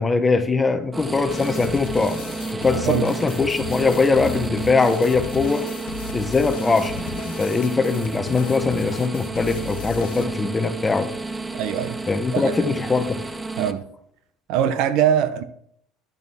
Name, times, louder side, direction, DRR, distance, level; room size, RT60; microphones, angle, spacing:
voice 1, 0.0-2.2 2.5-5.6 6.1-11.1 12.1-13.2, left 4 dB, 15° left, 0.9 m, -21 dB
sound 1, 0.9-13.7, right 3 dB, 10° right, 0.6 m, -31 dB
sound 2, 1.3-10.3, left 9 dB, 85° left, 0.7 m, -36 dB
voice 2, 2.7-3.1 11.6-12.0 12.3-12.7 13.6-13.9 14.5-15.4, right 9 dB, 65° right, 0.7 m, -22 dB
10.5 x 6.6 x 3.5 m
cardioid pair, 130°, 0 cm